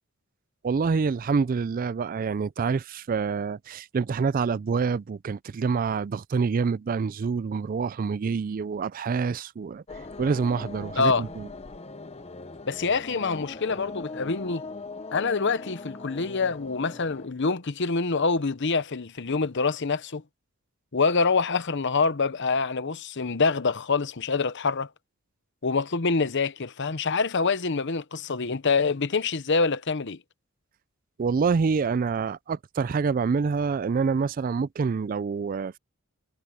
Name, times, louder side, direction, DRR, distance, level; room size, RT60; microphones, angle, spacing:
voice 1, 0.6-9.8 10.2-11.5 31.2-35.8, right 5 dB, 40° right, 0.3 m, -26 dB
sound 1, 9.9-17.3, left 3 dB, 30° left, 0.9 m, -40 dB
voice 2, 12.7-14.6 15.1-20.2 20.9-24.9 25.6-30.2, left 4 dB, 55° left, 0.8 m, -26 dB
head